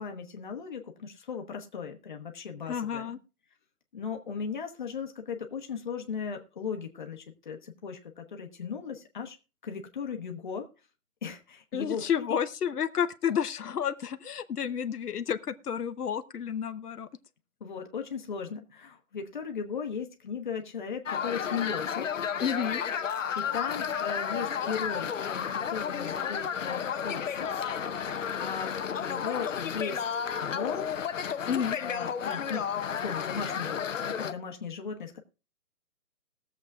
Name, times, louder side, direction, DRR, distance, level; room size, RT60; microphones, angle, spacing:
voice 1, 0.0-3.1 3.9-9.4 9.6-10.7 11.2-12.4 17.6-22.3 23.3-27.7 28.4-30.0 30.4-31.1 31.8-35.2, left 6 dB, 30° left, 1.2 m, -37 dB
voice 2, 2.7-3.2 11.7-17.1 22.4-22.8 31.5-31.8, left 8 dB, 85° left, 0.9 m, -30 dB
sound 1, 21.1-34.3, left 7 dB, 55° left, 0.8 m, -32 dB
21.0 x 7.4 x 2.4 m
hypercardioid pair, 175°, 45 cm